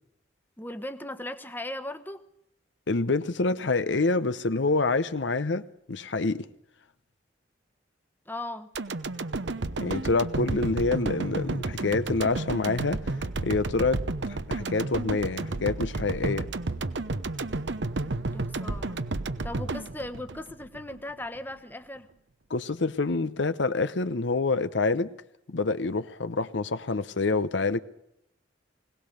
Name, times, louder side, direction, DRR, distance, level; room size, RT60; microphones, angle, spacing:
voice 1, 0.6-2.2 8.3-8.7 18.3-19.0 19.4-22.1, left 1 dB, 10° left, 1.1 m, -38 dB
voice 2, 2.9-5.6 5.9-6.5 9.8-13.1 13.4-14.0 14.3-16.5 22.5-25.1 25.5-27.8, left 3 dB, 75° left, 0.8 m, -27 dB
sound 1, 8.8-21.0 21.4-21.5, right 2 dB, 70° right, 0.9 m, -32 dB
21.5 x 18.0 x 6.8 m
head